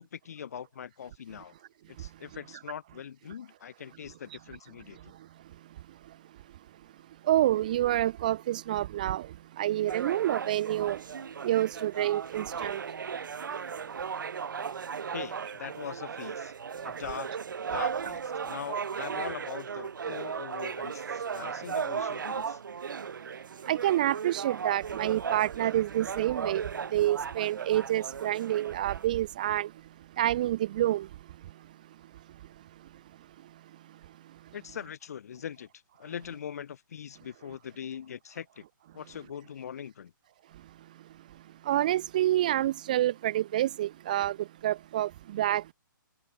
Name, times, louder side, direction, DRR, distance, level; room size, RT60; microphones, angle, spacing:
voice 1, 0.0-1.5 1.9-5.1 15.1-16.5 16.8-17.3 17.7-22.6 34.5-35.7 36.0-38.6 38.9-40.1, left 8 dB, 45° left, 2.5 m, -41 dB
voice 2, 7.3-9.3 9.6-11.0 11.4-12.8 23.7-26.6 26.9-29.7 30.2-31.1 41.7-44.3 44.6-45.7, right 13 dB, 20° right, 0.5 m, -27 dB
sound 1, 9.9-29.1, right 6 dB, 65° right, 1.9 m, -36 dB
hypercardioid pair, 170°, 11 cm